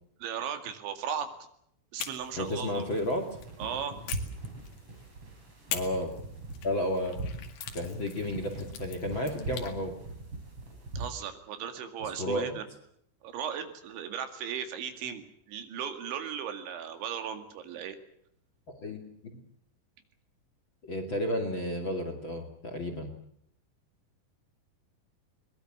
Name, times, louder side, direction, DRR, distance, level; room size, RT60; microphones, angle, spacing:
voice 1, 0.2-1.3 1.9-2.9 3.6-4.0 11.0-12.7 13.2-18.0, right 8 dB, 80° right, 8 dB, 4.6 m, -36 dB
sound 1, 2.0-3.5 4.1-5.1 5.7-9.8, left 9 dB, 65° left, 4.0 m, -42 dB
sound 2, 2.2-11.1, right 2 dB, 30° right, 5.9 m, -42 dB
voice 2, 2.4-3.2 5.7-6.1 6.6-7.2 7.7-9.9 12.2-12.6 18.8-19.4 20.8-23.1, left 1 dB, 35° left, 6 dB, 2.2 m, -32 dB
22.5 x 21.5 x 7.5 m, 0.71 s
omnidirectional pair, 5.3 m